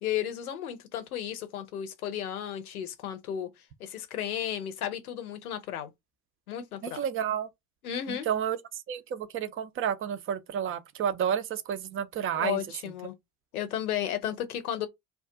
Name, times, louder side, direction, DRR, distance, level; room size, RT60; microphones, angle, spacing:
voice 1, 0.0-3.5 3.8-5.9 6.5-7.0 7.8-8.3 12.3-13.2 13.5-14.9, left 10 dB, 80° left, 0.7 m, -33 dB
voice 2, 6.8-7.5 8.1-8.6 8.9-12.6, right 8 dB, 30° right, 0.5 m, -30 dB
2.3 x 2.3 x 3.7 m
figure-of-eight pair, 65°, 43 cm